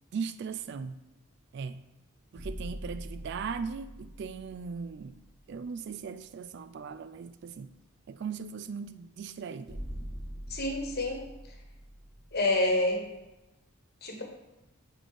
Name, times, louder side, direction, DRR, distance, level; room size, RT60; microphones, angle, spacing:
voice 1, 0.1-1.0 1.5-1.8 2.3-5.2 5.5-7.7 8.1-9.8, right 5 dB, 55° right, 0.3 m, -38 dB
sound 1, 2.2-5.9 6.2-6.3 9.7-13.3, equal, ahead, 1.6 m, -44 dB
voice 2, 10.5-11.2 12.3-13.0 14.0-14.2, left 2 dB, 50° left, 1.2 m, -27 dB
6.9 x 3.8 x 4.8 m
head